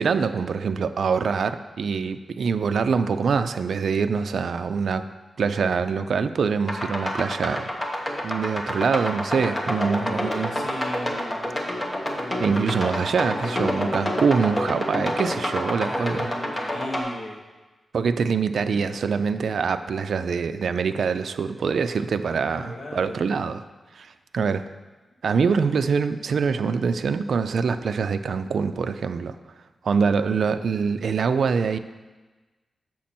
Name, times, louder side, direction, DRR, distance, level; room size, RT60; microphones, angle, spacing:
voice 1, 0.0-5.0 5.4-7.7 8.2-10.5 12.4-16.3 17.9-23.6 23.9-24.6 25.2-29.4 29.8-31.8, right 5 dB, 75° right, 10 dB, 0.3 m, -24 dB
sound 1, 6.7-17.0, left 1 dB, 20° left, 1.0 m, -28 dB
voice 2, 9.4-11.5 15.4-17.4 18.7-18.9 22.5-23.5, left 1 dB, 60° left, -1 dB, 1.3 m, -37 dB
7.3 x 6.0 x 4.3 m, 1.2 s
wide cardioid pair, 125°, 0 cm